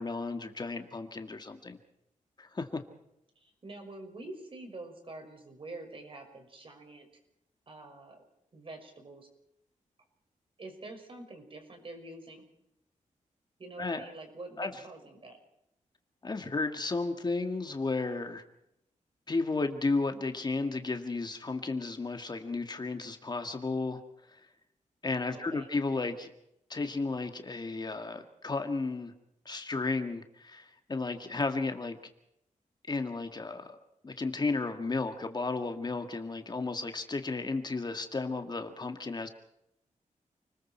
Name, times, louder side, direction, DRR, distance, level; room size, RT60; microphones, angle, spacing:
voice 1, 0.0-1.8 2.4-2.8 13.8-14.1 14.6-14.7 16.2-18.4 19.3-24.0 24.3-24.4 25.0-26.3 26.7-29.1 29.5-32.0 32.9-33.8 34.0-39.3, left 3 dB, 35° left, 6 dB, 1.9 m, -33 dB
voice 2, 3.4-7.1 7.7-8.3 8.5-9.3 10.6-12.5 13.6-15.4 25.3-25.7, right 2 dB, 40° right, 4 dB, 6.1 m, -46 dB
29.5 x 21.0 x 4.5 m, 0.81 s
wide cardioid pair, 120°, 13 cm